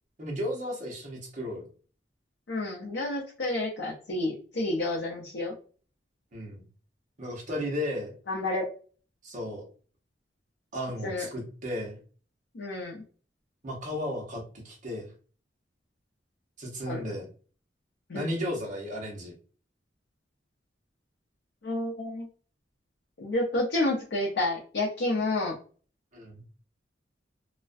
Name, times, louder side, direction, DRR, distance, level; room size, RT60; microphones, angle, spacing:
voice 1, 0.2-1.7 6.3-6.6 7.2-8.1 9.2-9.6 10.7-12.0 13.6-15.1 16.6-17.3 18.1-19.3 26.1-26.4, left 1 dB, 45° right, 0 dB, 0.8 m, -34 dB
voice 2, 2.5-5.5 8.3-8.7 11.0-11.3 12.5-13.0 16.9-17.2 18.1-18.3 21.6-22.3 23.2-25.5, left 2 dB, 70° left, -4 dB, 0.6 m, -30 dB
2.4 x 2.1 x 2.5 m, 0.39 s
head